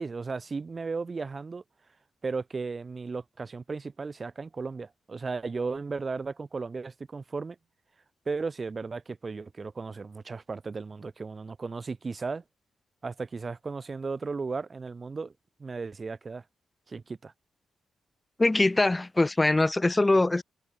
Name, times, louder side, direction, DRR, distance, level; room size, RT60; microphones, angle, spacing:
voice 1, 0.0-1.6 2.2-7.6 8.2-12.4 13.0-15.3 15.6-16.4 16.9-17.3, right 4 dB, 40° right, 1.5 m, -35 dB
voice 2, 18.4-20.4, left 2 dB, 20° left, 0.9 m, -22 dB
supercardioid pair, 50°, 0 cm